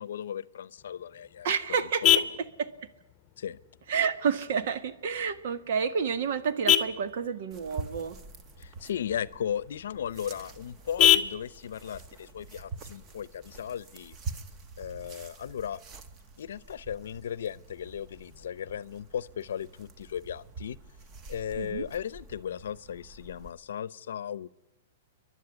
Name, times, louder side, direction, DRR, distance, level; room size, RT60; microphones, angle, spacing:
voice 1, 0.0-1.5 1.8-2.2 3.4-3.6 8.6-14.1 14.8-15.8 16.4-20.8 21.3-24.5, left 9 dB, 75° left, 20 dB, 0.7 m, -36 dB
Vehicle horn car horn honking, 0.8-13.8, left 10 dB, 30° left, 0.9 m, -31 dB
voice 2, 1.4-2.2 2.6-2.7 3.9-8.2 21.6-21.8, right 6 dB, 60° right, 12 dB, 1.4 m, -29 dB
sound 1, 7.5-23.5, right 4 dB, 30° right, 1.2 m, -46 dB
28.5 x 11.5 x 9.8 m, 0.91 s
hypercardioid pair, 140°, 0 cm